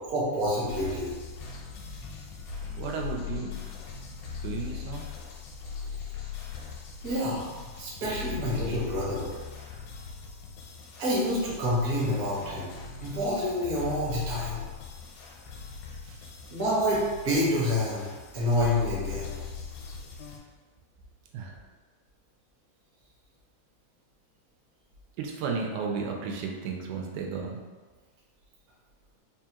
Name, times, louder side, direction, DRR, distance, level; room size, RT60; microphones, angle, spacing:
voice 1, 0.1-1.1 7.0-7.4 7.8-9.3 11.0-12.7 13.0-14.6 16.5-18.1 18.3-19.3, left 1 dB, 60° right, -8 dB, 0.9 m, -27 dB
sound 1, 0.7-20.4, left 6 dB, 85° left, 2.1 m, -40 dB
voice 2, 2.7-3.6 4.4-5.1 16.0-16.3 21.3-21.6 25.2-27.6, right 5 dB, 90° right, 1 dB, 2.0 m, -34 dB
4.8 x 2.3 x 2.8 m, 1.4 s
omnidirectional pair, 3.4 m